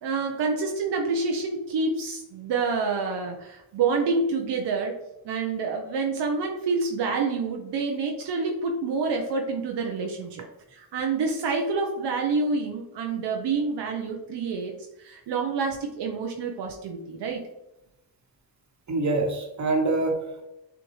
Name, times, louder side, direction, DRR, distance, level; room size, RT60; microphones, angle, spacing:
voice 1, 0.0-4.9 5.2-10.4 10.7-17.4, right 4 dB, 80° right, 2 dB, 0.7 m, -28 dB
voice 2, 18.9-20.4, right 2 dB, 45° right, 3 dB, 1.2 m, -25 dB
6.8 x 2.5 x 3.1 m, 0.90 s
cardioid pair, 60°, 41 cm